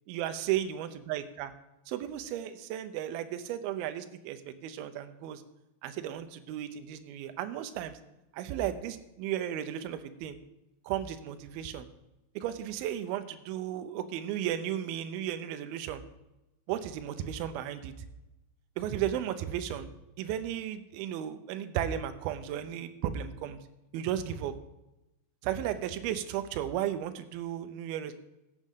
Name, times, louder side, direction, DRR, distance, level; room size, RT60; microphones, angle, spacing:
voice 1, 0.1-1.5 1.9-5.4 5.8-8.0 8.3-10.4 10.8-11.9 12.4-16.0 16.7-17.9 18.8-19.9 20.2-23.6 23.9-24.6 25.4-28.1, right 10 dB, 80° right, 9 dB, 2.2 m, -34 dB
15.5 x 7.4 x 3.6 m, 0.96 s
omnidirectional pair, 5.0 m